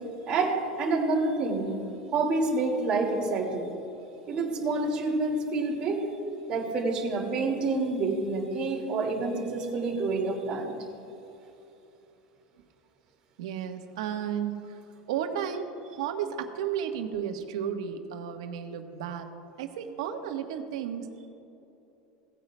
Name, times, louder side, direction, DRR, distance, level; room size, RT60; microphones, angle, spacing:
voice 1, 0.3-1.7 2.1-3.7 4.3-6.0 6.5-10.7, right 3 dB, 30° right, -1 dB, 2.0 m, -28 dB
voice 2, 13.4-14.8 15.1-15.7 15.9-19.3 19.6-21.1, right 8 dB, 85° right, 5 dB, 1.1 m, -33 dB
17.5 x 9.2 x 2.2 m, 3.0 s
supercardioid pair, 165°, 3 cm